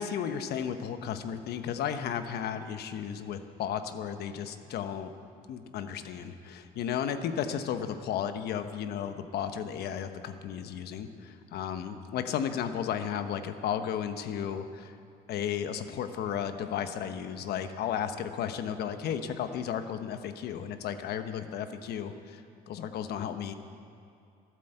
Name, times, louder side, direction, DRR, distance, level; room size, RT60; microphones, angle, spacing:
voice 1, 0.0-5.1 5.5-14.9 15.3-23.5, left 8 dB, 70° left, 8 dB, 1.1 m, -34 dB
12.5 x 12.5 x 8.0 m, 2.4 s
cardioid pair, 110°, 17 cm